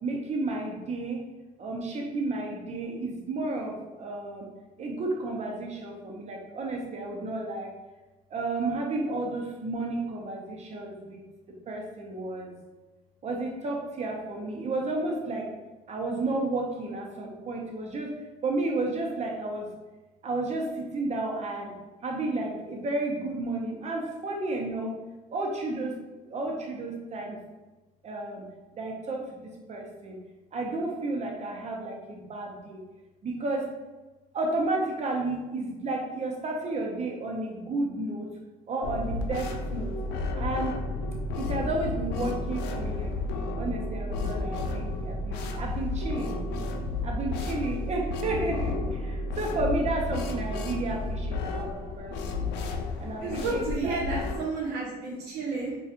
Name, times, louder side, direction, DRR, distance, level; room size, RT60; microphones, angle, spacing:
voice 1, 0.0-1.2 1.6-4.5 4.8-7.7 8.3-11.2 11.7-12.5 13.2-15.5 15.9-18.1 18.4-19.7 20.2-21.7 22.0-24.9 25.3-25.9 26.3-27.4 28.0-28.4 28.7-30.2 30.5-32.8 33.2-33.7 34.3-38.3 38.7-40.0 40.4-40.7 41.4-43.1 43.6-46.5 47.0-48.7 49.0-52.5 53.0-54.0, right 2 dB, 40° right, 0 dB, 0.7 m, -32 dB
sound 1, 38.8-54.4, left 2 dB, 80° left, 0.5 m, -32 dB
voice 2, 53.2-55.8, right 3 dB, 80° right, -6 dB, 0.8 m, -31 dB
4.1 x 2.4 x 2.5 m, 1.2 s
cardioid pair, 110°, 17 cm